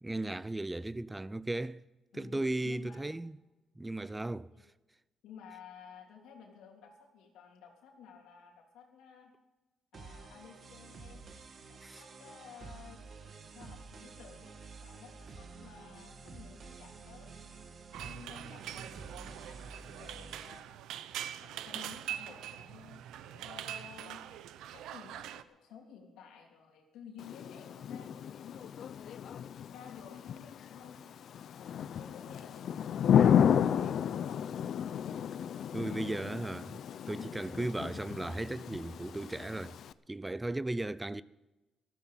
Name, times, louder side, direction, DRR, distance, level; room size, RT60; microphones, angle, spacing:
voice 1, 0.0-1.8 2.1-3.3 3.8-4.5 11.8-12.0 35.7-36.8 37.1-39.8 40.1-41.2, right 2 dB, 15° right, 0.4 m, -36 dB
voice 2, 2.1-3.2 4.5-4.6 5.2-9.3 9.9-11.2 11.6-14.6 14.8-17.6 18.0-20.7 21.0-21.1 21.4-24.2 24.7-28.8 29.1-29.4 29.7-31.3 31.6-34.4, left 7 dB, 90° left, 3.2 m, -54 dB
sound 1, 9.9-20.6, right 4 dB, 50° right, 1.7 m, -50 dB
sound 2, 17.9-25.4, right 11 dB, 85° right, 0.7 m, -43 dB
Thunder / Rain, 27.2-39.9, left 8 dB, 65° left, 0.5 m, -32 dB
14.0 x 13.5 x 5.6 m
cardioid pair, 90°, 0 cm